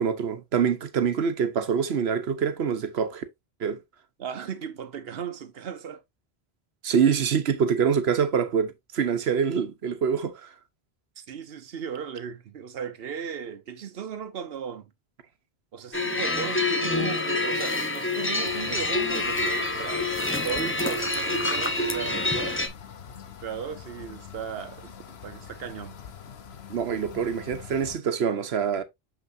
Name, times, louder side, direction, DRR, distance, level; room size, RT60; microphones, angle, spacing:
voice 1, 0.0-3.2 3.6-3.8 6.8-10.5 26.7-28.8, right 7 dB, 90° right, 1.2 m, -25 dB
voice 2, 4.2-6.0 11.2-14.9 15.7-22.6 23.4-26.0, right 7 dB, 70° right, 1.1 m, -36 dB
sound 1, 15.9-22.7, left 2 dB, 15° left, 0.8 m, -27 dB
sound 2, 18.4-28.0, left 7 dB, 85° left, 1.1 m, -44 dB
6.5 x 5.9 x 2.6 m
omnidirectional pair, 1.0 m